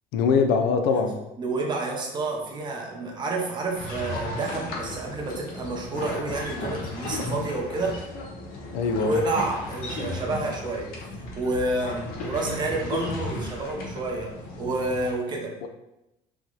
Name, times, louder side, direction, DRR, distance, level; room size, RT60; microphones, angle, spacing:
voice 1, 0.1-1.2 8.7-9.2 15.6-15.7, left 5 dB, 90° left, 6 dB, 0.5 m, -22 dB
voice 2, 1.4-8.0 9.0-10.9 11.4-15.7, right 2 dB, 30° right, 0 dB, 0.7 m, -29 dB
sound 1, 3.7-15.1, left 2 dB, 70° left, 0.9 m, -35 dB
3.1 x 2.8 x 3.7 m, 0.92 s
cardioid pair, 155°, 16 cm